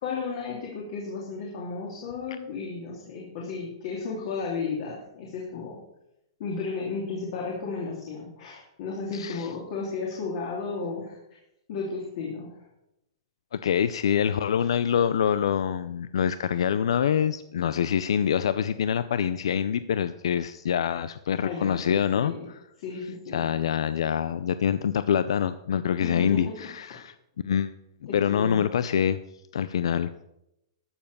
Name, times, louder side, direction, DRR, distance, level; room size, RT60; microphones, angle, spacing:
voice 1, 0.0-5.8 6.4-11.2 11.7-12.6 21.4-22.5 22.8-23.5 26.0-26.5 28.0-28.6, left 4 dB, 45° left, -2 dB, 2.9 m, -34 dB
voice 2, 9.1-9.5 13.5-22.6 23.3-27.1 27.4-27.8 28.1-29.2 29.5-30.1, left 8 dB, 80° left, 13 dB, 0.5 m, -25 dB
13.0 x 7.1 x 6.8 m, 0.85 s
hypercardioid pair, 170°, 3 cm